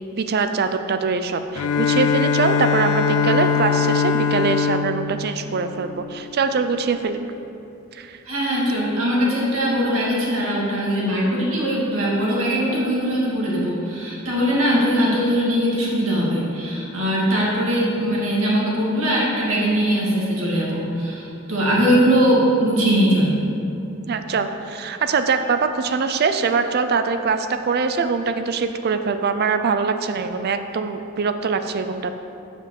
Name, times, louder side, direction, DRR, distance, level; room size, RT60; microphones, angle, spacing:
voice 1, 0.1-7.2 7.9-8.2 24.1-32.1, right 5 dB, 50° right, 8 dB, 0.4 m, -23 dB
Bowed string instrument, 1.5-6.3, left 6 dB, 85° left, 0.4 m, -22 dB
voice 2, 8.3-23.4, equal, 80° right, -5 dB, 2.2 m, -21 dB
7.5 x 5.3 x 7.4 m, 2.7 s
head